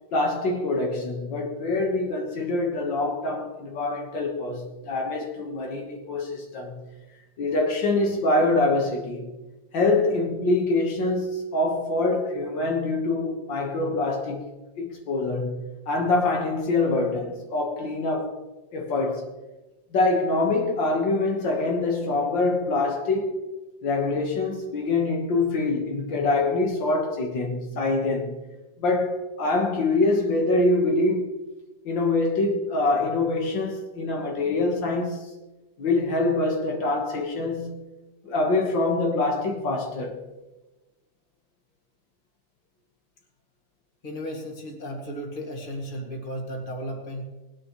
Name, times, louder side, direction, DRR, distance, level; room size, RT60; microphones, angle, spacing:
voice 1, 0.1-6.8 7.4-9.3 9.7-14.4 14.8-18.4 18.7-19.3 19.9-23.5 23.8-28.3 28.8-31.3 31.9-35.3 35.8-37.9 38.2-40.2, left 2 dB, 75° left, 2.2 m, -25 dB
voice 2, 44.0-47.2, equal, 25° left, 2.2 m, -34 dB
19.5 x 10.5 x 3.1 m
omnidirectional pair, 2.0 m